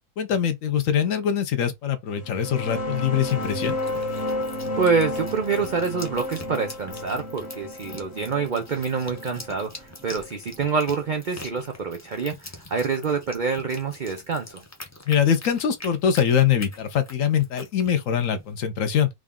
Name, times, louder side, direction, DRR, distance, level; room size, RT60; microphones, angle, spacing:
voice 1, 0.2-3.8 15.1-19.1, left 8 dB, 65° left, 1.0 m, -23 dB
sound 1, 2.2-11.5, left 1 dB, 45° left, 1.3 m, -32 dB
sound 2, 3.3-18.5, left 2 dB, 25° left, 0.4 m, -44 dB
voice 2, 4.8-14.6, right 5 dB, 85° right, 0.4 m, -26 dB
3.6 x 2.3 x 3.6 m
omnidirectional pair, 1.6 m